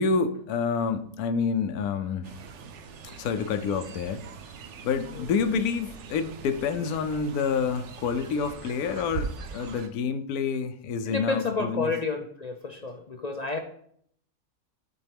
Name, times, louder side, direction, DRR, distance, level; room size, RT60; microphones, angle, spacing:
voice 1, 0.0-2.3 3.1-4.2 4.8-11.9, left 5 dB, 75° left, 8 dB, 1.1 m, -28 dB
Fowl, 2.2-9.9, right 5 dB, 60° right, 0.9 m, -41 dB
voice 2, 11.1-13.6, left 3 dB, 50° left, 3 dB, 0.4 m, -30 dB
12.0 x 4.3 x 3.5 m, 0.65 s
omnidirectional pair, 1.6 m